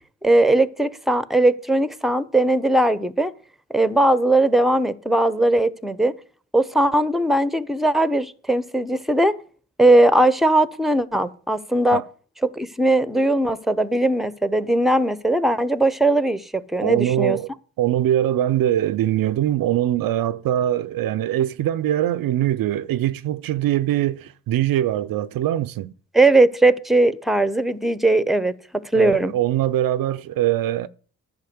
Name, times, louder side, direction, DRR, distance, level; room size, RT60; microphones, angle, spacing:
voice 1, 0.2-3.3 3.7-6.1 6.5-9.3 9.8-12.0 12.4-17.4 26.1-29.3, right 2 dB, ahead, 0.9 m, -19 dB
voice 2, 16.8-17.5 17.8-25.9 28.9-30.9, right 12 dB, 75° right, 0.5 m, -22 dB
10.5 x 5.1 x 7.9 m
supercardioid pair, 40°, 34 cm